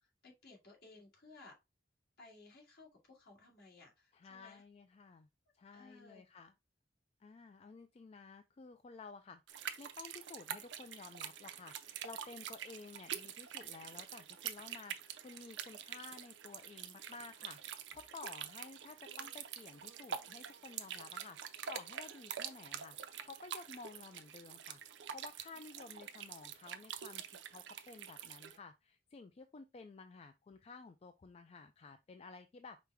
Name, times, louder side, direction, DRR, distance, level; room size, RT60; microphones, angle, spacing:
voice 1, 0.0-1.5 2.2-4.6 5.7-6.2 25.7-26.1, left 3 dB, 60° left, 2.0 m, -59 dB
voice 2, 4.1-5.3 5.5-6.5 7.2-23.0 23.2-24.8 25.1-32.8, left 4 dB, 35° left, 0.3 m, -53 dB
sound 1, 9.5-28.6, right 8 dB, 75° right, 0.5 m, -46 dB
5.1 x 2.2 x 4.6 m
head